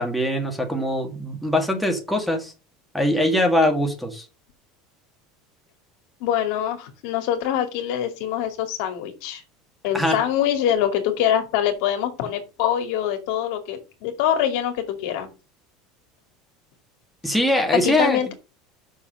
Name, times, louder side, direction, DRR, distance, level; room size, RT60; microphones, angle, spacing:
voice 1, 0.0-2.5 2.9-4.3 9.9-10.2 17.2-18.3, left 1 dB, ahead, 1 dB, 1.8 m, -22 dB
voice 2, 6.2-9.4 9.8-15.3 17.7-18.3, left 10 dB, 70° left, 6 dB, 2.3 m, -24 dB
6.4 x 5.8 x 6.8 m, 0.31 s
supercardioid pair, 155°, 0 cm